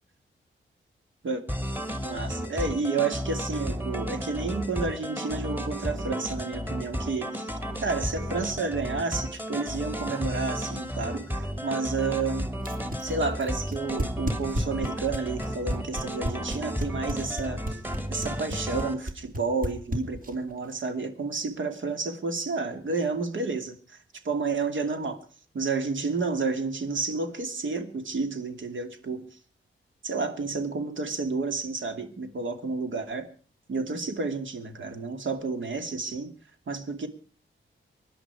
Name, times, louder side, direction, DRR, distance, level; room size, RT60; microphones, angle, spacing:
sound 1, 1.5-18.9, equal, 10° right, 2.4 m, -33 dB
voice 1, 2.0-7.5 7.8-12.5 13.0-17.8 18.1-24.0 24.2-25.2 25.5-29.2 30.0-33.3 33.7-36.3 36.7-37.1, right 4 dB, 65° right, 7 dB, 2.7 m, -30 dB
sound 2, 12.6-20.5, equal, 40° right, 3.1 m, -31 dB
24.0 x 11.0 x 4.8 m, 0.42 s
wide cardioid pair, 130°, 21 cm